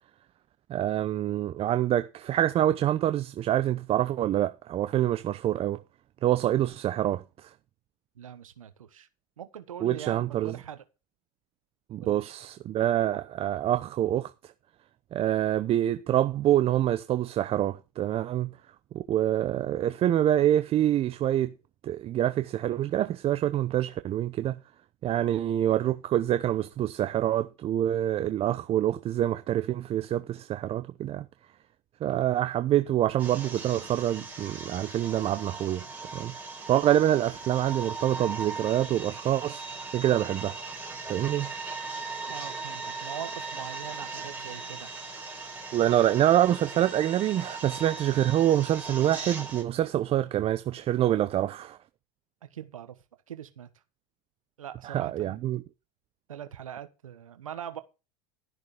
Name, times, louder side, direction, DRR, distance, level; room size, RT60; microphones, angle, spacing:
voice 1, 0.7-5.8 6.2-7.5 9.8-10.5 11.9-14.3 15.1-18.5 18.9-21.5 21.8-24.6 25.0-31.2 32.0-35.8 36.1-36.3 36.7-39.6 39.9-40.5 41.1-41.5 45.7-51.8 54.8-55.6, right 12 dB, 35° right, 0.7 m, -26 dB
voice 2, 8.1-9.1 9.4-10.8 12.0-12.3 42.2-44.9 52.4-53.0 53.3-53.7 54.6-55.5 56.3-57.8, right 10 dB, 90° right, 1.3 m, -42 dB
sound 1, 33.2-49.6, right 3 dB, 10° right, 4.4 m, -39 dB
12.5 x 6.7 x 5.0 m
hypercardioid pair, 100°, 17 cm